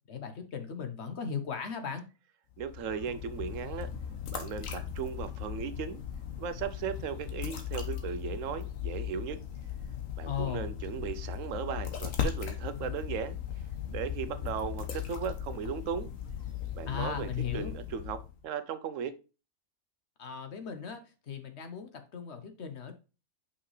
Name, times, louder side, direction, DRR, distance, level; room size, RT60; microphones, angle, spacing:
voice 1, 0.1-2.1 10.2-10.7 16.9-17.7 20.2-22.9, left 7 dB, 55° left, 1.1 m, -37 dB
sound 1, 2.5-18.4, left 9 dB, 75° left, 1.4 m, -38 dB
voice 2, 2.6-3.9 4.3-6.0 6.4-9.4 10.2-13.4 13.9-16.1 16.8-17.3 17.5-19.2, right 7 dB, 75° right, 1.0 m, -37 dB
5.6 x 5.6 x 3.2 m
omnidirectional pair, 1.4 m